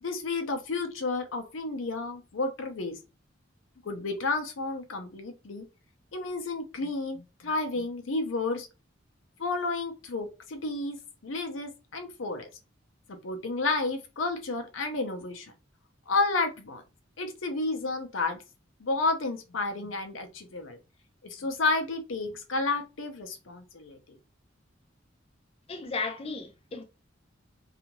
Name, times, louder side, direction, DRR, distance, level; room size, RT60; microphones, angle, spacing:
voice 1, 0.0-3.0 3.8-5.6 6.1-8.7 9.4-11.0 11.2-12.5 13.1-15.5 16.1-16.8 17.2-18.4 18.8-20.8 21.2-24.0, left 3 dB, 80° left, 0.6 m, -31 dB
voice 2, 25.7-26.8, left 4 dB, 30° left, 0.4 m, -34 dB
2.7 x 2.4 x 2.9 m
head